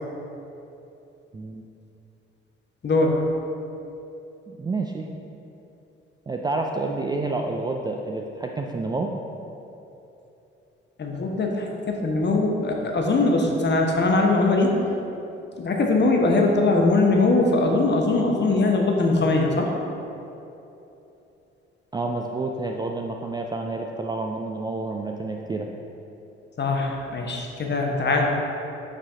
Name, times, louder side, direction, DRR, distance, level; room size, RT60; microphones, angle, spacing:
voice 1, 2.8-3.2 11.0-14.7 15.6-19.7 26.6-28.3, left 2 dB, 35° left, 1 dB, 0.9 m, -21 dB
voice 2, 4.5-5.1 6.3-9.1 21.9-25.7, right 3 dB, 15° right, 1 dB, 0.3 m, -29 dB
5.6 x 4.9 x 3.6 m, 2.9 s
figure-of-eight pair, 40°, 31 cm